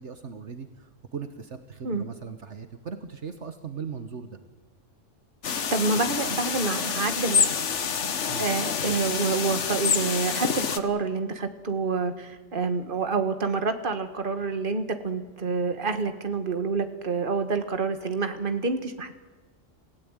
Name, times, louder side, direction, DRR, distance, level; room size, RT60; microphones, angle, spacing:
voice 1, 0.0-4.4 8.3-8.5, right 6 dB, 65° right, 9 dB, 1.6 m, -38 dB
sound 1, 5.4-10.8, left 6 dB, 70° left, 1.5 m, -27 dB
voice 2, 5.5-7.5 8.4-19.2, right 4 dB, 45° right, 8 dB, 1.8 m, -28 dB
27.0 x 16.5 x 9.0 m, 1.2 s
omnidirectional pair, 1.3 m